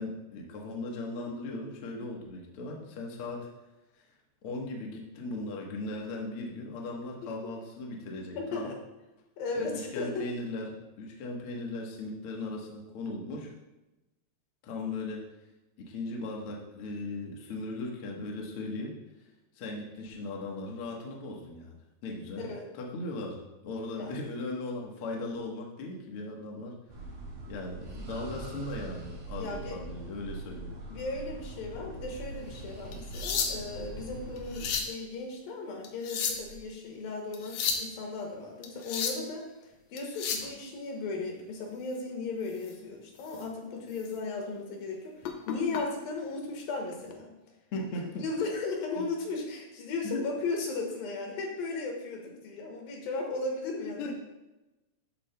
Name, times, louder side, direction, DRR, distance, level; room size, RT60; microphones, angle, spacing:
voice 1, 0.0-3.5 3.9-4.1 4.4-8.7 9.6-13.5 14.6-15.3 15.8-18.9 19.2-19.3 19.5-26.8 27.5-30.7 47.7-48.3 49.0-49.1 50.0-50.2 53.7-54.1, left 2 dB, 55° left, 0 dB, 1.6 m, -38 dB
voice 2, 8.3-8.8 9.4-10.3 22.4-22.7 24.0-24.1 29.4-29.8 30.9-39.5 39.9-45.1 45.5-47.3 48.2-54.1, left 3 dB, 90° left, 1 dB, 3.2 m, -36 dB
sound 1, 26.9-34.8, right 2 dB, 85° right, 4.5 m, -42 dB
sound 2, 32.9-33.8 34.4-35.0 35.8-36.6 37.3-37.9 38.6-39.3 40.0-40.5 42.6-42.7 43.2-43.5 43.9-44.1 45.2-45.8 46.9-47.1, left 6 dB, 75° left, 1.9 m, -33 dB
12.0 x 7.6 x 2.2 m, 1.0 s
omnidirectional pair, 3.9 m